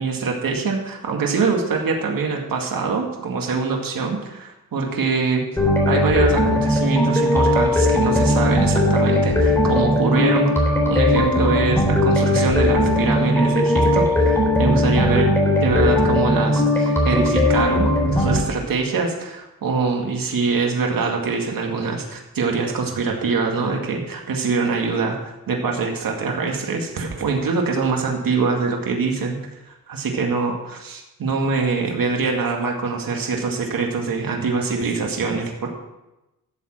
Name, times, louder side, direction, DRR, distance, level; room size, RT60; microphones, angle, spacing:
voice 1, 0.0-5.4 5.9-15.3 15.6-29.4 29.7-35.7, right 4 dB, 70° right, 1 dB, 2.1 m, -24 dB
sound 1, 5.6-18.4, left 1 dB, 5° left, 3.8 m, -18 dB
13.0 x 7.4 x 6.1 m, 0.96 s
cardioid pair, 95°, 36 cm